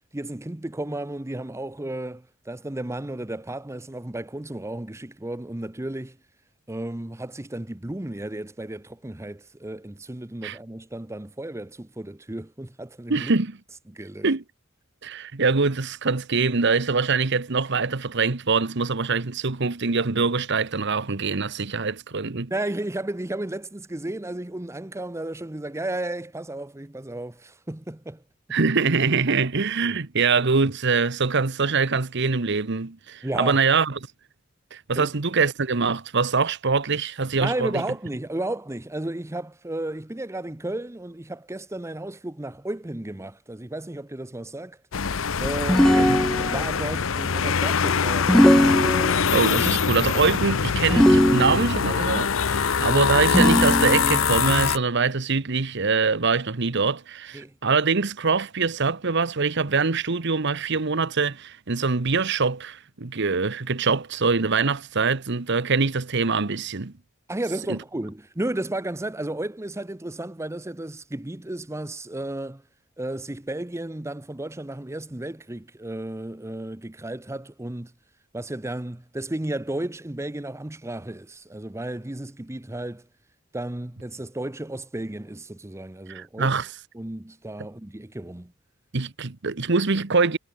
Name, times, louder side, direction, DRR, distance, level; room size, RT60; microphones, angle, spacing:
voice 1, 0.1-6.2 6.7-13.3 13.9-14.3 22.5-28.2 28.5-28.6 33.2-33.6 35.0-35.1 37.4-44.8 45.4-46.2 46.5-48.5 57.3-57.5 67.3-72.6 73.0-77.9 78.3-83.1 83.5-86.5 86.9-88.5, right 1 dB, 15° right, 0.8 m, -33 dB
voice 2, 13.1-13.6 14.2-14.4 15.0-22.5 28.5-34.0 34.7-37.7 45.9-46.2 49.3-66.9 67.7-67.8 86.1-86.7 88.9-90.4, right 4 dB, 60° right, 1.1 m, -24 dB
sound 1, 44.9-54.8, left 6 dB, 80° left, 0.8 m, -23 dB
sound 2, 45.7-46.8 48.3-49.5 50.9-52.0 53.3-54.3, equal, ahead, 0.3 m, -19 dB
head